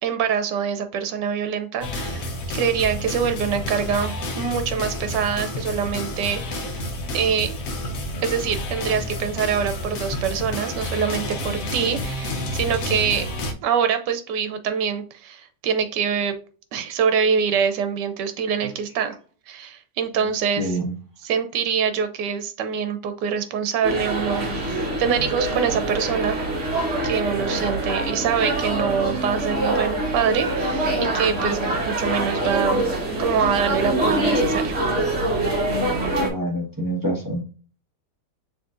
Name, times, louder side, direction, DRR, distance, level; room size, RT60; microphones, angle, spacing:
voice 1, 0.0-6.8 7.1-7.6 8.2-13.3 13.6-16.3 16.7-19.2 19.5-20.8 21.2-26.4 27.0-31.6 31.9-32.9 33.2-34.8, right 7 dB, 85° right, 8 dB, 1.3 m, -25 dB
sound 1, 1.8-13.5, left 1 dB, 60° left, 1.1 m, -30 dB
voice 2, 20.6-20.9 36.2-37.4, right 1 dB, 15° right, -2 dB, 1.0 m, -26 dB
sound 2, 23.8-36.3, right 2 dB, 40° right, 1.6 m, -24 dB
6.3 x 3.1 x 2.5 m, 0.39 s
omnidirectional pair, 1.8 m